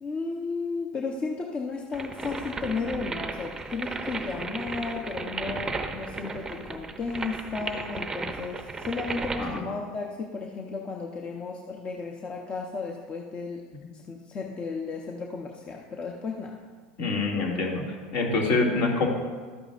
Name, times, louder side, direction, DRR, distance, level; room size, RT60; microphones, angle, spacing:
voice 1, 0.0-13.6 13.9-16.6, left 4 dB, 30° left, 0 dB, 0.8 m, -34 dB
sound 1, 1.9-9.6, right 3 dB, 15° right, 0.6 m, -35 dB
voice 2, 17.0-19.1, left 3 dB, 55° left, -1 dB, 2.2 m, -26 dB
12.5 x 8.9 x 2.5 m, 1.5 s
supercardioid pair, 115°, 4 cm